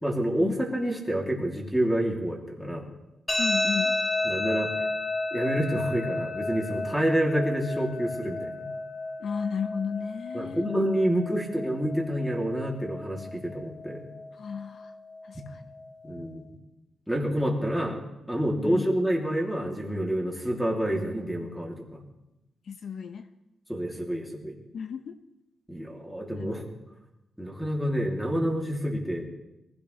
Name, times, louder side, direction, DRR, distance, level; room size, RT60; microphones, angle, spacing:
voice 1, 0.0-2.9 4.2-4.7 5.3-8.6 10.3-14.1 16.0-16.5 17.1-18.0 18.3-22.0 23.7-24.5 25.7-26.7 27.4-29.3, equal, ahead, 0 dB, 3.0 m, -28 dB
sound 1, 3.3-16.3, left 2 dB, 20° left, 5.1 m, -33 dB
voice 2, 3.4-4.0 9.2-10.7 14.4-14.9 15.2-15.6 18.6-18.9 22.7-23.3 24.7-25.2 26.3-26.5, left 6 dB, 60° left, 8 dB, 0.8 m, -33 dB
23.5 x 16.0 x 3.4 m, 0.94 s
wide cardioid pair, 130°, 0 cm